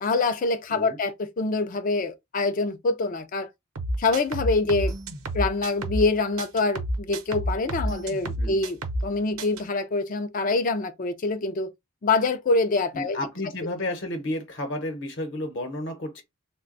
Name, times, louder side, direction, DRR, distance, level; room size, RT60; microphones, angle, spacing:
voice 1, 0.0-3.5 4.0-4.9 5.3-11.7 12.0-13.2, left 3 dB, 40° left, 0.4 m, -25 dB
sound 1, 3.8-6.1 6.4-9.1 9.4-9.6, right 1 dB, 85° right, 0.7 m, -29 dB
voice 2, 12.9-16.2, left 1 dB, 55° left, 0.9 m, -32 dB
3.2 x 2.2 x 3.8 m
head